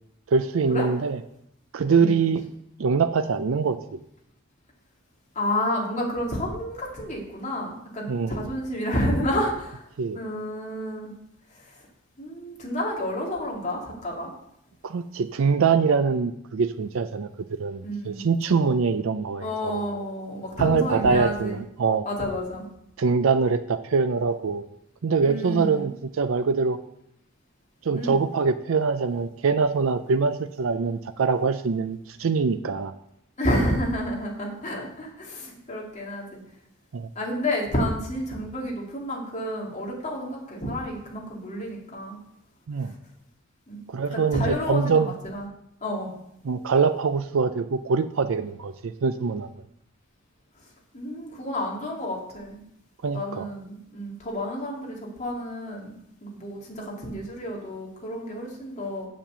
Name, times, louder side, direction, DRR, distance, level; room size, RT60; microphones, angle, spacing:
voice 1, 0.3-1.2 1.7-2.5 2.8-4.0 8.1-8.4 10.0-10.2 14.8-17.3 17.6-19.9 20.6-22.0 23.0-24.6 25.0-26.8 27.8-32.9 36.9-37.1 42.7-42.9 43.9-45.1 46.4-49.5 53.0-53.5, right 5 dB, 70° right, 9 dB, 0.5 m, -24 dB
voice 2, 5.3-9.8 10.1-11.1 12.2-14.3 17.8-18.2 19.4-21.6 22.1-22.6 25.2-25.9 28.0-28.2 33.4-36.4 37.2-42.2 42.8-42.9 43.7-43.8 44.1-45.5 45.8-46.1 50.9-52.6 53.1-55.9 56.2-59.1, equal, 35° left, -2 dB, 2.6 m, -30 dB
7.4 x 7.3 x 6.8 m, 0.76 s
head